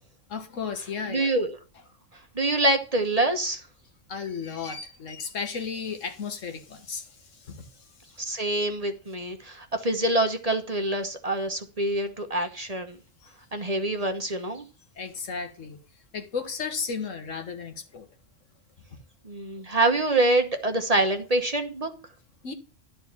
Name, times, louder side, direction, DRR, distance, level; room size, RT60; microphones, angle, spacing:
voice 1, 0.3-1.3 4.1-8.2 13.2-13.3 15.0-15.8 16.1-18.1 22.4-22.5, left 5 dB, 80° left, 1.7 m, -34 dB
voice 2, 1.1-1.5 2.3-3.6 8.2-13.0 13.5-14.6 19.2-21.9, right 2 dB, 30° right, 1.1 m, -25 dB
11.5 x 4.2 x 7.2 m
omnidirectional pair, 1.3 m